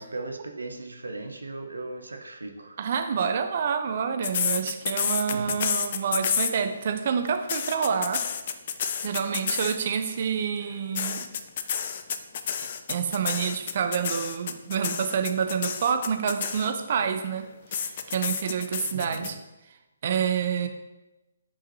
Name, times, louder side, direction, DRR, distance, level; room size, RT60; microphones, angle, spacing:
voice 1, 0.0-2.8 5.3-5.6 18.9-19.4, right 2 dB, 75° right, 5 dB, 0.9 m, -37 dB
voice 2, 2.8-8.3 9.0-11.3 12.9-17.4 17.8-19.4 20.0-20.7, right 7 dB, 45° right, 7 dB, 0.7 m, -28 dB
sound 1, 4.2-6.9 7.3-10.0 11.0-17.0 17.7-19.3, left 8 dB, 45° left, 0.5 m, -29 dB
8.6 x 4.9 x 2.8 m, 1.0 s
figure-of-eight pair, 135°, 0 cm